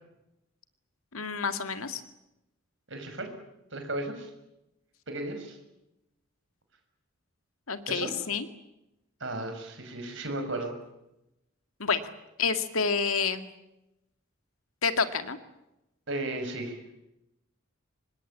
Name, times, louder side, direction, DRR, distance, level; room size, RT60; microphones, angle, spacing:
voice 1, 1.1-2.0 7.7-8.5 11.8-12.0 12.4-13.5 14.8-15.4, left 5 dB, 85° left, 9 dB, 2.2 m, -28 dB
voice 2, 2.9-3.3 3.7-4.3 5.1-5.6 7.9-8.1 9.2-10.7 16.1-16.8, right 2 dB, 60° right, 6 dB, 6.2 m, -34 dB
26.0 x 21.0 x 8.6 m, 0.91 s
head